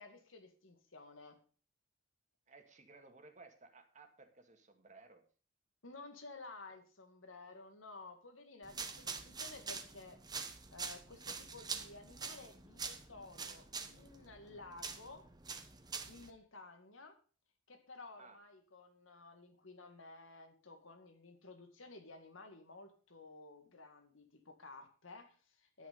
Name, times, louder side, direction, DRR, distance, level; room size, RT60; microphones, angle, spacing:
voice 1, 0.0-1.4 5.8-10.2 10.7-15.2 16.1-17.1 17.7-25.9, left 3 dB, 85° left, 6 dB, 2.1 m, -54 dB
voice 2, 2.5-5.2 9.0-9.2 18.2-18.4, right 3 dB, 40° right, 5 dB, 2.0 m, -59 dB
sound 1, 8.6-16.3, right 5 dB, 20° right, 1.1 m, -45 dB
10.5 x 9.5 x 5.4 m, 0.39 s
head